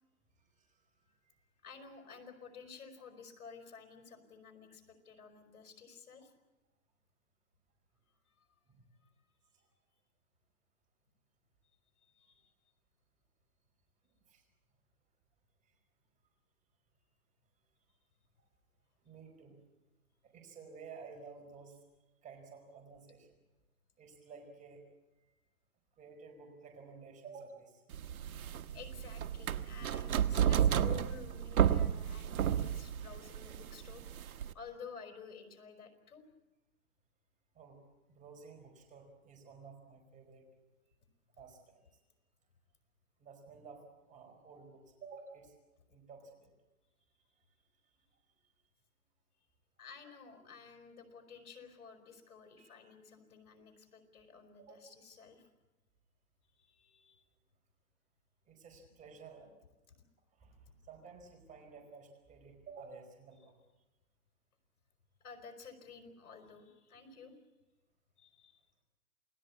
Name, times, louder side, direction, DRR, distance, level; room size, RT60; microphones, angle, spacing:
voice 1, 0.4-1.4 8.7-9.0 12.3-12.4 14.3-14.4 15.6-15.7 19.0-19.6 20.3-21.8 22.2-23.4 24.0-24.8 26.0-27.8 37.5-37.8 38.1-40.5 41.4-42.0 43.2-45.5 45.9-46.5 47.3-47.4 52.6-52.7 54.7-54.9 58.5-59.5 60.4-60.6 60.8-63.5, right 5 dB, 15° right, 3 dB, 4.9 m, -53 dB
voice 2, 1.6-6.3 8.4-8.5 9.0-9.1 12.0-12.5 28.7-36.3 49.8-55.5 56.5-57.3 65.2-67.4 68.2-68.6, left 6 dB, 85° left, 6 dB, 5.1 m, -53 dB
sound 1, 27.9-34.5, right 9 dB, 75° right, 1.2 m, -32 dB
28.5 x 17.5 x 8.6 m, 1.1 s
hypercardioid pair, 150°, 43 cm